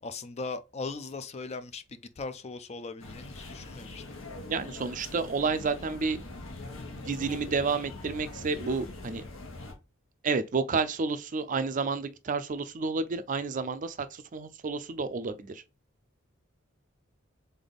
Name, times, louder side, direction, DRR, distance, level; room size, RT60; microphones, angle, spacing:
voice 1, 0.0-4.0, left 3 dB, 35° left, 0.5 m, -39 dB
sound 1, 3.0-9.7, left 2 dB, 85° left, 1.2 m, -43 dB
voice 2, 4.5-6.2 7.0-9.2 10.2-15.6, right 4 dB, 40° right, 0.4 m, -30 dB
3.8 x 3.4 x 4.0 m
head